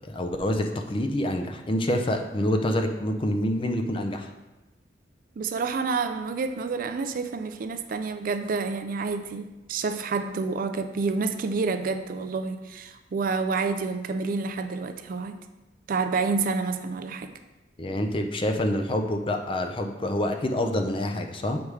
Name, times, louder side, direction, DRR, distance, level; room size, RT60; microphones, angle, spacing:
voice 1, 0.1-4.3 17.8-21.6, left 1 dB, 30° left, 5 dB, 0.5 m, -27 dB
voice 2, 5.4-15.4 15.9-17.3, right 4 dB, 50° right, 9 dB, 0.4 m, -28 dB
7.0 x 4.8 x 3.2 m, 1.1 s
head